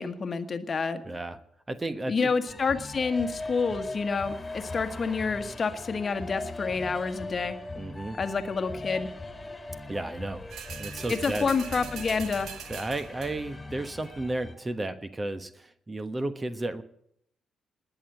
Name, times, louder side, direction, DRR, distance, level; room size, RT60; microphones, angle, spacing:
voice 1, 0.0-1.0 2.1-7.6 8.2-9.1 11.1-12.5, left 4 dB, 40° left, 9 dB, 1.4 m, -28 dB
voice 2, 1.0-1.4 1.7-2.3 7.7-8.2 9.9-11.5 12.7-16.8, right 2 dB, 25° right, 11 dB, 1.2 m, -33 dB
sound 1, 2.5-14.5, left 2 dB, 20° left, 2.1 m, -40 dB
sound 2, 10.5-13.6 14.0-14.1, right 8 dB, 60° right, 1.1 m, -42 dB
20.0 x 7.2 x 8.7 m, 0.70 s
figure-of-eight pair, 40°, 0 cm